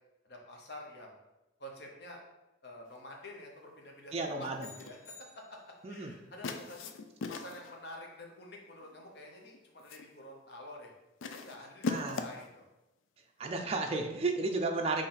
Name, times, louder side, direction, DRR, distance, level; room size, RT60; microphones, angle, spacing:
voice 1, 0.2-1.2 1.6-2.2 2.6-4.1 4.4-4.5 4.7-5.6 5.9-6.9 7.3-10.9 11.3-12.7, left 1 dB, 55° left, 0 dB, 0.9 m, -48 dB
voice 2, 4.1-4.6 5.8-6.1 11.9-12.3 13.4-15.1, right 3 dB, 30° right, 3 dB, 0.4 m, -33 dB
sound 1, 4.6-5.0 6.4-7.8 8.8-9.2 9.5-10.1 11.2-12.5, left 4 dB, 80° left, 0.4 m, -39 dB
sound 2, 4.6-6.0, left 3 dB, 10° left, 1.2 m, -54 dB
4.1 x 3.2 x 3.9 m, 0.98 s
head